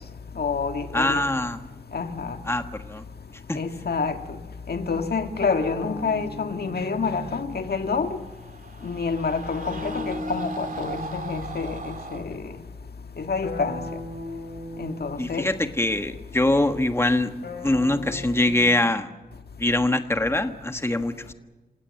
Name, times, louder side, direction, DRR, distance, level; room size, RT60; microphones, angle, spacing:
voice 1, 0.4-1.2 1.9-2.4 3.5-4.2 4.7-8.1 8.8-12.4 13.2-13.8 14.8-15.4, left 5 dB, 70° left, 1.7 m, -28 dB
voice 2, 0.9-1.6 2.4-3.0 3.5-3.6 15.2-17.3 17.6-19.1 19.6-21.3, left 1 dB, 15° left, 1.5 m, -23 dB
sound 1, 5.4-7.8 9.4-11.8 13.4-15.7 17.4-18.8, left 1 dB, 90° left, 6.3 m, -37 dB
sound 2, 7.8-12.3, right 4 dB, 55° right, 2.5 m, -38 dB
28.0 x 17.5 x 7.5 m
wide cardioid pair, 85°, 17 cm